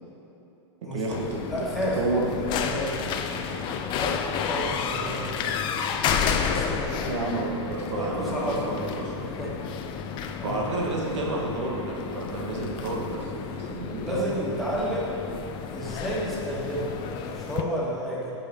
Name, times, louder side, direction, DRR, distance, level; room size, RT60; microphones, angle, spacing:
voice 1, 0.8-1.4 1.8-2.3 7.1-9.1 10.4-14.2, right 2 dB, 75° right, -1 dB, 1.4 m, -30 dB
sound 1, 1.1-17.6, left 7 dB, 30° left, 0.5 m, -31 dB
voice 2, 1.5-2.9 3.2-5.5 6.5-7.1 8.0-8.7 9.2-9.8 10.4-10.6 14.0-15.1 15.7-18.3, equal, ahead, -8 dB, 1.8 m, -32 dB
5.7 x 5.7 x 6.8 m, 2.9 s
hypercardioid pair, 125°, 16 cm